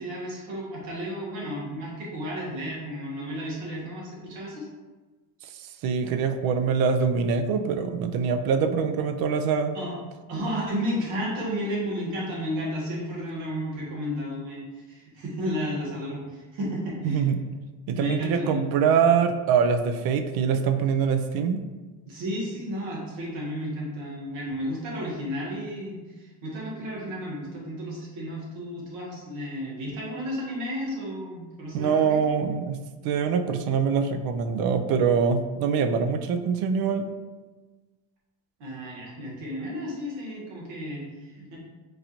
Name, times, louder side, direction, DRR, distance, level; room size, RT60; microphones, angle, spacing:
voice 1, 0.0-4.7 9.7-9.9 10.3-17.3 17.9-18.6 22.0-32.2 38.6-41.6, equal, 85° right, -4 dB, 1.5 m, -33 dB
voice 2, 5.8-9.8 17.0-17.4 17.9-21.6 31.7-32.8 33.0-37.1, right 6 dB, 60° right, 8 dB, 0.5 m, -24 dB
4.7 x 2.5 x 2.9 m, 1.3 s
cardioid pair, 110°, 42 cm